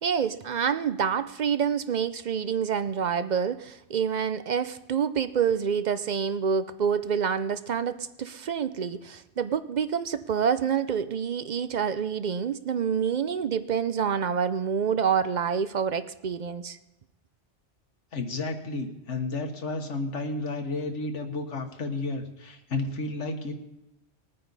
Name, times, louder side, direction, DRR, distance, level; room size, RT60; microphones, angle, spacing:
voice 1, 0.0-16.8, right 7 dB, 50° right, 13 dB, 0.5 m, -27 dB
voice 2, 18.1-23.5, left 3 dB, 80° left, 5 dB, 1.6 m, -32 dB
20.5 x 9.4 x 4.0 m, 0.92 s
omnidirectional pair, 1.2 m